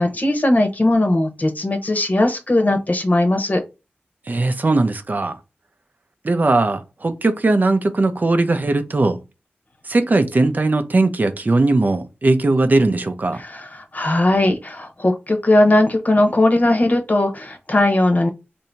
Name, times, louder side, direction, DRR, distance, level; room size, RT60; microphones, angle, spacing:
voice 1, 0.0-3.6 13.3-18.3, left 1 dB, 40° left, 0.9 m, -18 dB
voice 2, 4.3-5.4 6.2-9.2 9.9-13.4, right 2 dB, 45° right, 0.5 m, -19 dB
2.8 x 2.7 x 4.4 m
wide cardioid pair, 65°, 4 cm